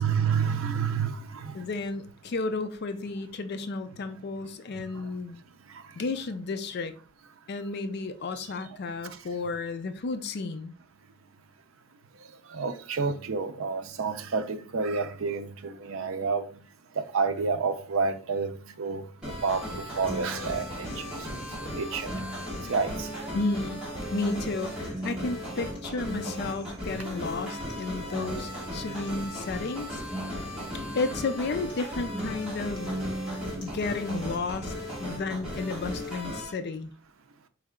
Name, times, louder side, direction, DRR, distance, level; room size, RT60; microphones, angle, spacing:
voice 1, 0.0-1.6 8.4-8.5 12.5-16.5 17.0-21.1 21.6-22.1 22.7-23.1, right 5 dB, 70° right, 0.5 m, -29 dB
voice 2, 1.5-5.4 6.0-6.9 7.5-10.7 23.3-23.8 24.1-30.0 30.3-30.4 30.9-32.9 33.6-34.7 35.0-36.9, left 3 dB, 50° left, 0.4 m, -32 dB
sound 1, 19.2-36.5, equal, 5° right, 2.0 m, -37 dB
sound 2, 20.0-36.1, equal, 25° left, 2.1 m, -40 dB
4.6 x 3.2 x 3.6 m
head